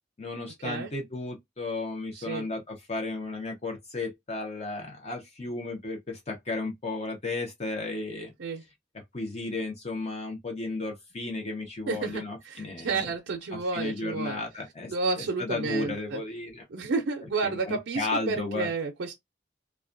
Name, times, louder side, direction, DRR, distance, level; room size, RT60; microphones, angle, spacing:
voice 1, 0.2-8.3 9.1-13.1 13.7-16.6 17.4-18.7, left 2 dB, 35° left, 0.6 m, -34 dB
voice 2, 2.2-2.5 8.4-8.6 11.9-14.4 14.9-16.2 16.7-19.1, right 4 dB, 75° right, 0.5 m, -31 dB
2.3 x 2.1 x 2.5 m
head